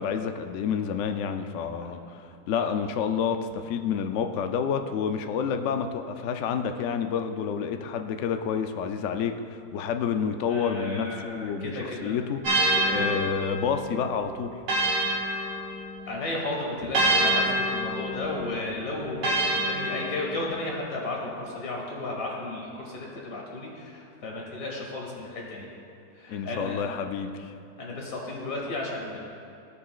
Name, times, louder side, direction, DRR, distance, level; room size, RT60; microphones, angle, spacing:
voice 1, 0.0-12.4 12.9-14.5 26.3-27.5, left 7 dB, 85° left, 7 dB, 0.6 m, -29 dB
voice 2, 10.5-12.1 12.8-13.2 16.1-25.7 26.1-26.8 27.8-29.2, left 2 dB, 50° left, -2 dB, 2.0 m, -34 dB
sound 1, 12.4-16.2 16.9-20.6, right 1 dB, 80° right, 1.9 m, -27 dB
15.0 x 6.8 x 2.4 m, 2.6 s
omnidirectional pair, 1.9 m